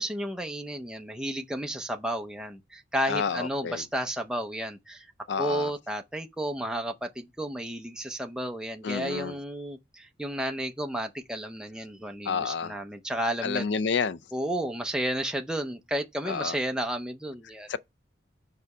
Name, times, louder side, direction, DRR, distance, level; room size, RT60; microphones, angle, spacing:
voice 1, 0.0-5.1 5.4-13.7 14.3-17.7, right 1 dB, 5° right, 0.6 m, -32 dB
voice 2, 3.1-3.8 5.3-5.7 8.8-9.4 12.3-12.7 13.4-14.2 16.3-16.6 17.7-17.8, left 5 dB, 70° left, 0.4 m, -29 dB
4.9 x 4.7 x 5.5 m
head